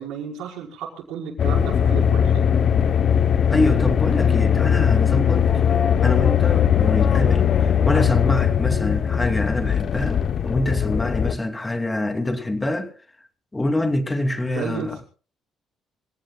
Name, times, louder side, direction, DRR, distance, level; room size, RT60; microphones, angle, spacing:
voice 1, 0.0-2.5 14.4-15.0, right 7 dB, 85° right, 5.5 m, -33 dB
sound 1, 1.4-11.4, left 8 dB, 55° left, 0.9 m, -19 dB
voice 2, 3.5-5.5 6.0-12.9 13.5-15.0, left 1 dB, 15° left, 2.8 m, -25 dB
26.0 x 17.0 x 2.4 m
cardioid pair, 90°, 0 cm